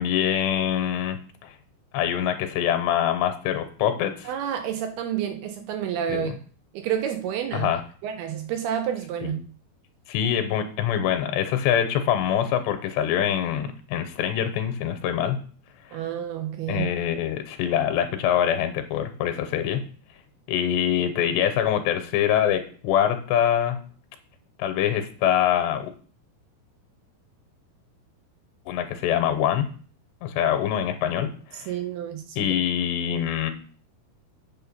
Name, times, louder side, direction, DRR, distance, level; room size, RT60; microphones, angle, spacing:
voice 1, 0.0-1.5 1.9-4.3 6.1-6.4 7.5-7.8 9.2-9.4 10.1-15.4 16.7-19.9 20.5-23.8 24.6-25.9 28.7-29.7 30.2-31.7 32.4-33.5, left 10 dB, 85° left, 7 dB, 3.0 m, -24 dB
voice 2, 4.3-6.3 6.7-7.7 8.0-9.4 15.9-16.9 31.7-32.5, right 9 dB, 80° right, 7 dB, 2.4 m, -29 dB
8.6 x 5.4 x 5.6 m, 0.43 s
omnidirectional pair, 5.0 m